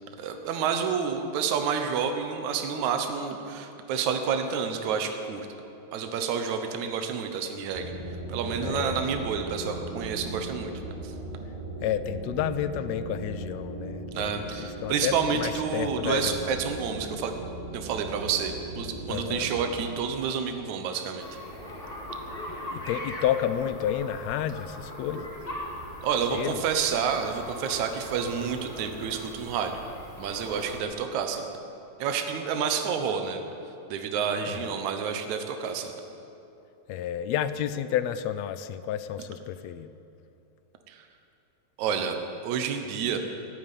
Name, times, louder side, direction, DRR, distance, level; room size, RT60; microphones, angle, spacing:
voice 1, 0.2-5.5 5.9-7.9 8.3-10.7 11.0-11.1 14.1-17.3 17.7-21.3 26.0-29.8 30.2-31.4 32.0-33.4 33.9-35.9 40.9-41.1 41.8-42.2 42.4-43.2, right 6 dB, 75° right, 6 dB, 2.4 m, -29 dB
sound 1, 7.7-19.9, right 2 dB, 20° right, 1.8 m, -38 dB
voice 2, 8.6-9.0 11.8-16.6 19.1-19.5 22.5-25.3 26.3-26.6 34.5-34.7 36.9-39.9, left 10 dB, 80° left, 13 dB, 1.7 m, -31 dB
sound 2, 21.2-30.8, left 1 dB, 20° left, 2.0 m, -40 dB
16.0 x 8.9 x 9.9 m, 2.8 s
omnidirectional pair, 3.3 m